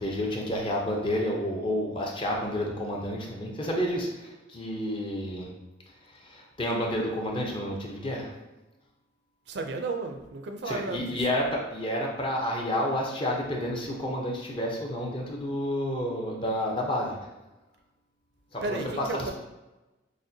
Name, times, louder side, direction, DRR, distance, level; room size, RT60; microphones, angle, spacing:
voice 1, 0.0-5.5 6.1-8.3 10.7-17.2 18.5-19.3, equal, 25° left, -1 dB, 0.6 m, -30 dB
voice 2, 9.5-11.2 18.6-19.3, right 3 dB, 60° right, 5 dB, 0.4 m, -33 dB
6.3 x 2.1 x 2.6 m, 1.1 s
head